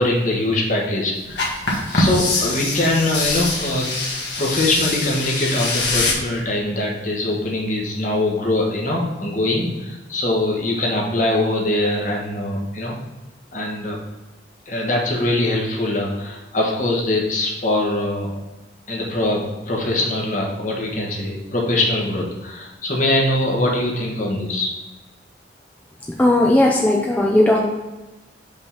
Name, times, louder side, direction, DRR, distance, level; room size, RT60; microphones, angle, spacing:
voice 1, 0.0-1.5 1.9-3.9 4.4-13.0 13.5-14.0 14.7-18.4 18.9-24.7, left 1 dB, 45° left, -1 dB, 1.2 m, -22 dB
sound 1, 1.3-6.1, left 2 dB, 70° left, 1.3 m, -23 dB
voice 2, 26.2-27.7, left 1 dB, 10° left, -2 dB, 0.5 m, -16 dB
5.3 x 3.5 x 5.6 m, 1.1 s
head